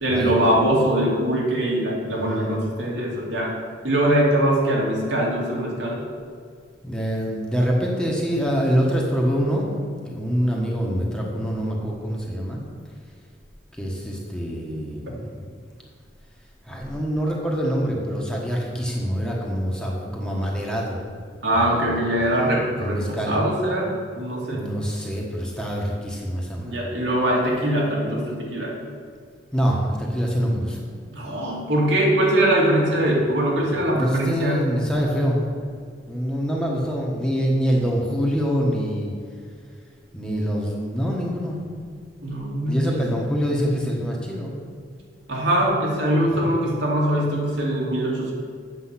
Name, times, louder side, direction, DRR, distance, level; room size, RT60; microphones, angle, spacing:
voice 1, 0.0-3.5 3.8-6.1 15.1-15.2 21.4-24.6 26.6-28.8 31.1-34.6 42.2-43.1 45.3-48.3, right 1 dB, 85° right, -3 dB, 2.4 m, -22 dB
voice 2, 2.0-2.6 6.8-9.7 10.0-12.6 13.8-15.5 16.7-21.0 21.5-22.0 22.8-23.3 24.4-26.9 29.5-30.8 33.9-35.4 36.1-39.1 40.1-41.6 42.7-44.5 46.4-46.5, equal, 5° left, -2 dB, 1.3 m, -25 dB
7.9 x 7.4 x 5.8 m, 2.1 s
head